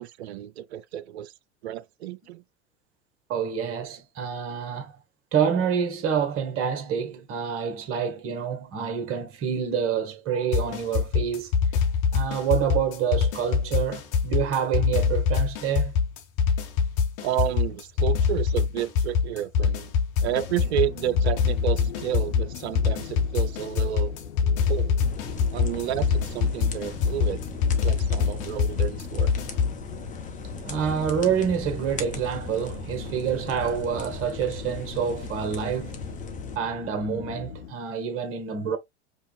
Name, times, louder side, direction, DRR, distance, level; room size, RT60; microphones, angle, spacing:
voice 1, 0.0-1.3 1.6-2.4 17.2-19.9 20.2-24.1 24.7-25.0 25.5-27.4 27.8-29.3, right 12 dB, 65° right, 0.5 m, -31 dB
voice 2, 3.3-4.9 5.3-11.5 12.1-15.9 30.6-36.0 36.5-38.8, right 7 dB, 40° right, 1.2 m, -27 dB
sound 1, 10.5-29.8, left 6 dB, 50° left, 1.1 m, -24 dB
sound 2, 20.2-37.7, left 7 dB, 80° left, 0.8 m, -41 dB
sound 3, 25.0-36.6, left 3 dB, 20° left, 1.0 m, -38 dB
5.3 x 2.4 x 2.4 m
figure-of-eight pair, 85°, 35 cm